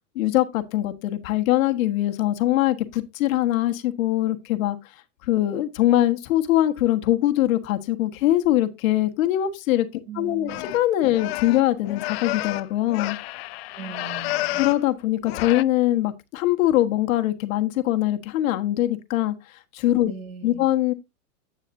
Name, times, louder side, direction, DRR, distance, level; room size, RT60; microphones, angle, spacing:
voice 1, 0.1-4.8 5.2-13.2 14.6-19.3 19.7-20.1 20.4-20.9, left 14 dB, 60° left, 1.5 m, -22 dB
voice 2, 10.1-10.6 13.7-14.6 20.0-20.7, right 7 dB, 65° right, 6.4 m, -39 dB
sound 1, 10.5-14.8 15.2-15.6, left 18 dB, 45° left, 0.4 m, -30 dB
9.8 x 9.0 x 2.7 m
supercardioid pair, 145°, 44 cm